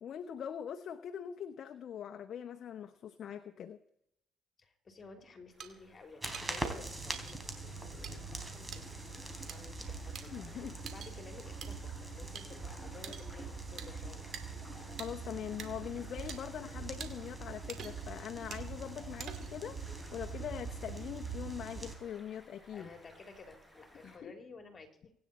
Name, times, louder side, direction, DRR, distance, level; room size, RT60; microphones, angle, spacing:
voice 1, 0.0-3.8 10.3-10.8 15.0-22.9 24.0-24.3, left 9 dB, 60° left, 5 dB, 0.9 m, -42 dB
voice 2, 4.6-14.3 22.7-25.1, left 4 dB, 35° left, 4 dB, 3.3 m, -54 dB
sound 1, 5.5-24.2, equal, 5° left, 5.9 m, -59 dB
sound 2, 5.6-5.7 6.3-6.5 7.1-7.4 8.0-8.1 8.7-8.8 9.5-9.6 10.1-10.2 10.9-11.1 11.6-11.7 12.3-12.5 13.0-13.3 13.8-13.9 14.3-14.4 15.0-15.1 15.6-15.7 16.3-16.4 17.0-17.1 17.7-18.1 18.5-18.7 19.2-19.6, right 8 dB, 60° right, 2.3 m, -45 dB
sound 3, 6.2-22.0, right 3 dB, 15° right, 3.6 m, -43 dB
24.5 x 9.8 x 4.3 m, 0.76 s
supercardioid pair, 80°, 0 cm